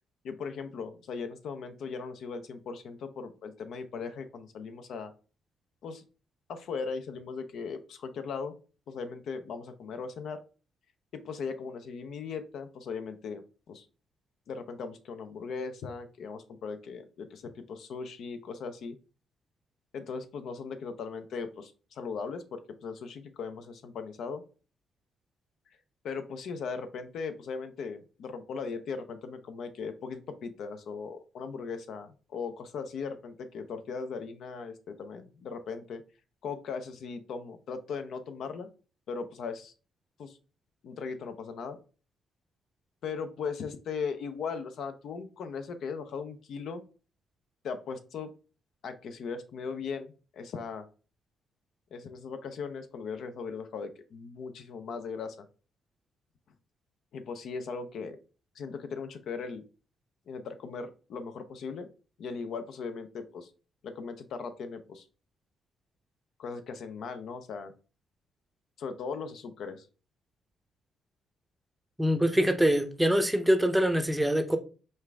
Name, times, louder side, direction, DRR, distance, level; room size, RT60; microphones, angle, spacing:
voice 1, 0.2-5.1 5.8-6.0 6.5-8.5 8.9-10.4 11.1-13.9 14.5-19.0 19.9-24.4 26.0-36.0 36.4-38.7 39.1-39.7 40.2-40.4 40.8-41.8 43.0-46.8 47.6-48.3 48.8-50.9 51.9-55.5 57.1-58.2 58.6-59.6 60.3-61.9 62.2-63.5 63.8-65.1 66.4-67.7 68.8-69.9, left 5 dB, 70° left, 0.6 m, -38 dB
voice 2, 72.0-74.6, equal, 5° right, 0.6 m, -24 dB
5.3 x 2.5 x 3.3 m
cardioid pair, 90°, 0 cm